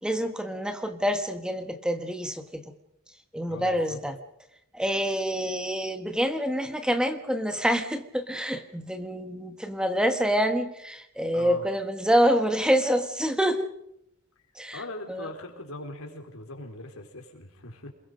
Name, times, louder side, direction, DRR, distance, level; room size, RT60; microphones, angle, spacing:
voice 1, 0.0-2.7 3.3-4.2 4.7-13.7 14.5-15.3, equal, 5° right, 8 dB, 1.4 m, -27 dB
voice 2, 3.5-4.0 11.3-11.6 14.7-17.9, left 2 dB, 75° left, 3 dB, 4.5 m, -40 dB
28.5 x 21.5 x 5.2 m, 0.77 s
head